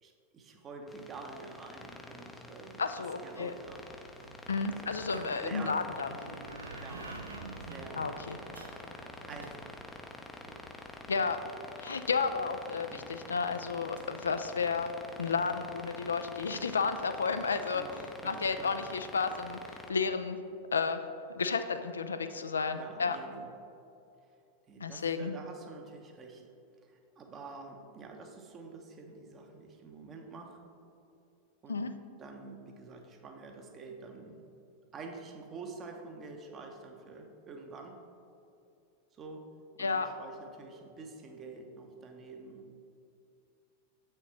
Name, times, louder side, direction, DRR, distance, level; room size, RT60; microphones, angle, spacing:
voice 1, 0.0-3.8 4.7-5.0 5.3-5.8 6.7-8.2 9.2-9.8 10.5-10.6 11.4-11.5 12.9-13.1 17.6-18.7 22.7-23.5 24.7-26.4 26.8-30.6 31.6-31.8 32.2-34.4 34.9-38.0 39.1-39.5 39.7-42.9, right 3 dB, 25° right, 3 dB, 0.8 m, -48 dB
sound 1, 0.9-19.9, left 2 dB, 10° left, 0.5 m, -48 dB
voice 2, 2.8-3.5 4.5-6.1 8.0-8.4 11.1-11.4 11.8-14.9 15.2-17.8 18.2-19.6 19.9-20.4 20.7-21.0 21.3-23.2 24.8-25.3 31.7-31.9 39.8-40.1, left 5 dB, 70° left, 9 dB, 0.3 m, -32 dB
sound 2, 3.4-11.0 14.0-14.1, right 2 dB, 75° right, 0.6 m, -48 dB
7.2 x 6.4 x 3.2 m, 2.7 s
figure-of-eight pair, 90°, 0 cm